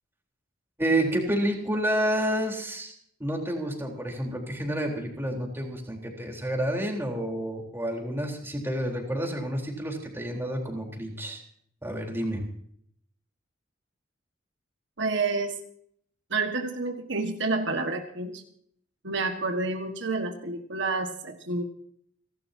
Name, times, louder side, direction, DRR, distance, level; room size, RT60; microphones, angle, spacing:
voice 1, 0.8-2.9 3.2-11.4 11.8-12.4, right 1 dB, 10° right, 0 dB, 3.8 m, -29 dB
voice 2, 15.0-15.6 16.3-18.4 19.0-21.6, right 3 dB, 70° right, 5 dB, 1.6 m, -29 dB
30.0 x 12.0 x 2.8 m, 0.64 s
head